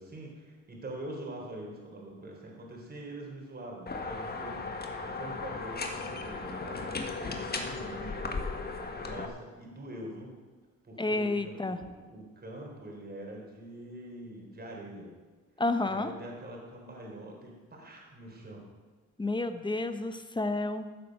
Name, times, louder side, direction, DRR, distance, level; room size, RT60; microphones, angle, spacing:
voice 1, 0.0-4.7 5.0-10.3 10.8-11.8 12.1-15.1 15.8-18.6, right 1 dB, 30° right, 0 dB, 4.0 m, -44 dB
sound 1, 3.9-9.3, left 3 dB, 30° left, 1.6 m, -36 dB
voice 2, 11.0-11.8 15.6-16.1 19.2-20.9, left 2 dB, 15° left, 9 dB, 1.1 m, -30 dB
14.5 x 7.7 x 6.6 m, 1.3 s
cardioid pair, 90°, 30 cm